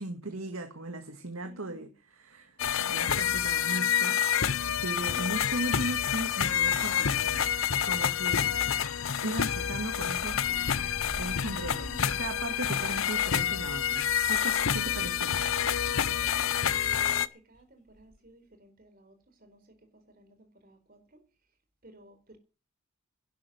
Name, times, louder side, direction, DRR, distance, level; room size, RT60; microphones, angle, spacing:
voice 1, 0.0-1.9 2.2-4.2 4.7-7.5 7.8-8.5 9.2-10.7 11.2-11.9 12.2-15.3, right 2 dB, 90° right, 1.9 m, -37 dB
voice 2, 1.4-1.9 11.6-12.3 15.0-15.3 15.8-21.2 21.8-22.4, right 1 dB, 45° right, 4.3 m, -56 dB
sound 1, 2.6-17.3, left 8 dB, 80° left, 0.8 m, -28 dB
sound 2, 9.5-16.0 16.3-16.4 17.5-17.6 17.9-18.2, equal, 40° left, 5.9 m, -47 dB
11.5 x 11.5 x 7.8 m
head